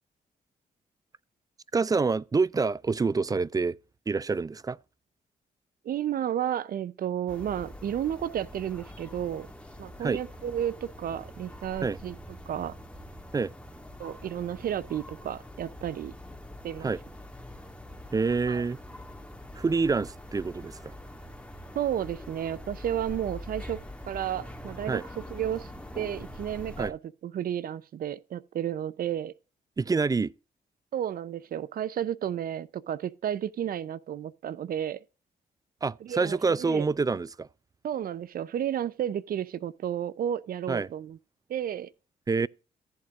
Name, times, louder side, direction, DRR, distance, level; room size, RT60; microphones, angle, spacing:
voice 1, 1.7-3.8 4.1-4.8 10.0-10.2 11.8-12.0 13.3-13.5 16.8-17.0 18.1-18.8 19.5-20.9 24.9-25.0 26.8-26.9 29.8-30.3 35.8-37.5 40.7-40.9 42.3-42.5, right 4 dB, 20° right, 0.4 m, -27 dB
voice 2, 5.8-9.5 9.8-12.2 12.5-12.8 14.0-16.1 16.6-16.9 18.5-18.6 21.7-23.8 24.1-25.0 25.3-25.7 26.0-29.3 30.9-35.0 36.0-36.9 37.8-41.2 41.5-41.9, right 10 dB, 65° right, 0.6 m, -32 dB
sound 1, 7.3-26.9, left 1 dB, 5° left, 1.9 m, -44 dB
14.5 x 7.8 x 2.5 m
cardioid pair, 70°, 16 cm